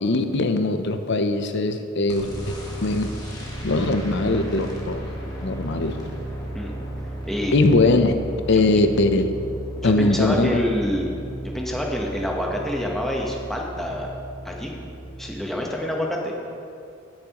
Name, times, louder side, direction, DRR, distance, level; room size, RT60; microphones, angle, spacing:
voice 1, 0.0-2.3 2.8-3.1 3.6-5.1 5.4-6.0 7.5-8.1 8.5-9.3 9.8-10.5, left 2 dB, 55° left, 8 dB, 0.6 m, -21 dB
sound 1, 2.1-15.4, right 1 dB, 20° left, 1.6 m, -34 dB
voice 2, 9.8-11.1 11.4-14.1 14.4-14.7 15.2-16.3, equal, ahead, -1 dB, 1.0 m, -27 dB
15.0 x 7.2 x 3.0 m, 2.4 s
head